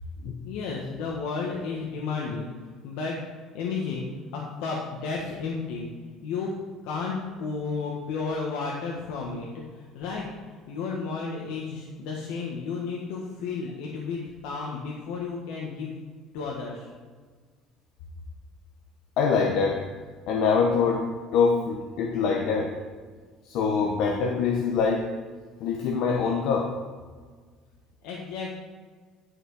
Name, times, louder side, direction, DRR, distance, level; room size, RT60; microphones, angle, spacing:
voice 1, 0.4-2.5 2.8-3.2 3.5-5.9 6.2-6.5 6.8-16.0 16.3-16.9 28.0-28.5, left 4 dB, 85° left, -2 dB, 1.5 m, -32 dB
voice 2, 19.2-19.8 20.3-21.1 21.3-22.7 23.4-25.1 25.6-26.7, left 5 dB, 60° left, 1 dB, 1.0 m, -24 dB
11.0 x 6.1 x 4.8 m, 1.5 s
cardioid pair, 160°, 0 cm